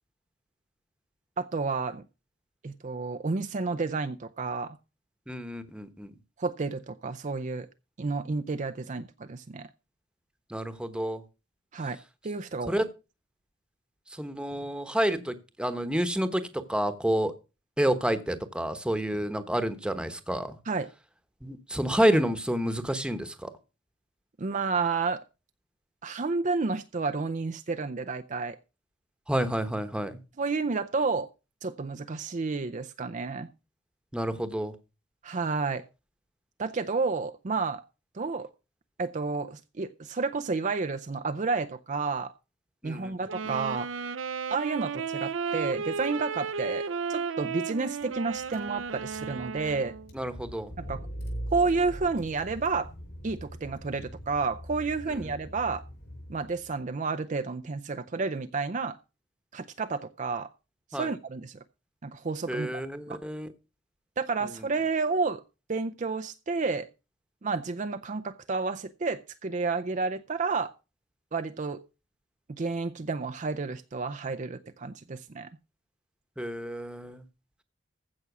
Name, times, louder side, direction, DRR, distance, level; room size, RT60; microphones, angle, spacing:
voice 1, 1.4-2.0 2.6-4.8 6.4-7.7 8.0-9.7 11.7-12.7 20.7-20.9 24.4-25.2 26.0-28.6 30.4-31.3 31.6-33.5 35.2-35.9 36.6-37.8 38.1-38.5 39.0-42.3 42.8-43.9 44.5-50.0 50.8-51.0 51.5-52.9 53.2-55.8 56.3-59.0 59.5-60.5 60.9-61.6 62.0-62.7 63.1-63.2 64.2-65.4 65.7-66.9 67.4-70.7 71.3-71.8 72.5-75.5, right 4 dB, 40° right, 0.5 m, -30 dB
voice 2, 5.3-6.1 10.5-11.2 12.7-12.8 14.1-17.3 17.8-20.6 21.4-23.5 29.3-30.2 34.1-34.7 42.8-43.1 43.4-43.5 50.1-50.7 55.1-55.3 60.9-61.1 62.5-63.5 64.4-64.7 76.4-77.2, equal, 5° right, 1.1 m, -29 dB
Wind instrument woodwind instrument, 43.3-50.1, right 5 dB, 80° right, 0.7 m, -34 dB
Car / Engine, 48.0-48.1 48.3-56.7, equal, 60° left, 7.7 m, -42 dB
15.0 x 6.0 x 6.0 m
head